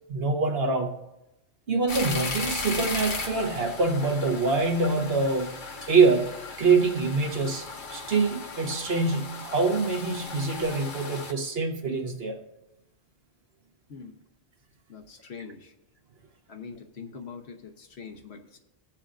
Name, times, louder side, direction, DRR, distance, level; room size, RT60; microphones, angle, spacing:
voice 1, 0.1-0.9 1.7-5.6 5.9-6.3 6.6-12.4, right 4 dB, 65° right, 3 dB, 1.3 m, -25 dB
sound 1, 1.9-11.3, left 4 dB, 50° left, 1.1 m, -36 dB
voice 2, 14.9-15.7 16.5-18.6, left 5 dB, 70° left, 5 dB, 1.2 m, -43 dB
21.5 x 7.3 x 2.6 m, 0.94 s
omnidirectional pair, 1.1 m